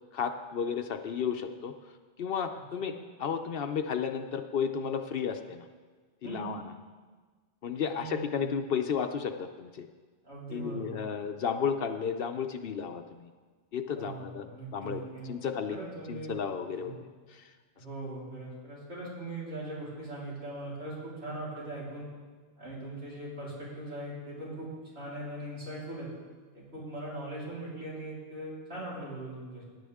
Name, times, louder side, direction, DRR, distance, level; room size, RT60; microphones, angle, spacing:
voice 1, 0.1-1.7 2.2-2.9 3.2-5.7 6.2-6.6 7.6-9.9 10.5-13.3 13.7-14.5 14.7-15.0 15.3-15.8 16.1-17.4, left 7 dB, 70° left, 7 dB, 0.8 m, -33 dB
voice 2, 2.5-2.9 6.2-6.5 7.9-8.6 10.2-11.0 13.9-15.3 15.7-16.3 16.8-16.9 17.8-22.1 22.6-26.1 26.5-29.6, right 2 dB, 80° right, -7 dB, 4.1 m, -40 dB
16.0 x 9.8 x 3.5 m, 1.4 s
omnidirectional pair, 1.0 m